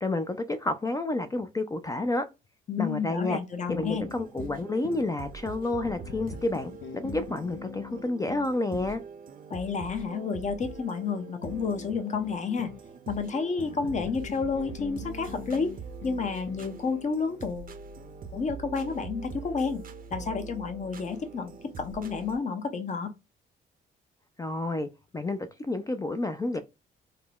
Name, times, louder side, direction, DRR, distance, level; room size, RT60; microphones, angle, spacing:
voice 1, 0.0-2.2 2.8-3.4 3.7-9.0 24.4-24.9 25.1-26.6, left 2 dB, 15° left, 0.3 m, -30 dB
voice 2, 2.7-4.1 9.5-12.7 13.1-15.7 16.0-17.7 18.3-19.8 20.1-23.1, left 5 dB, 35° left, 0.7 m, -30 dB
sound 1, 3.5-22.4, right 5 dB, 45° right, 0.5 m, -43 dB
sound 2, 3.7-5.1 5.8-9.0 11.4-12.8 13.6-16.8, left 8 dB, 75° left, 0.5 m, -43 dB
3.6 x 2.0 x 2.3 m
cardioid pair, 90°, 20 cm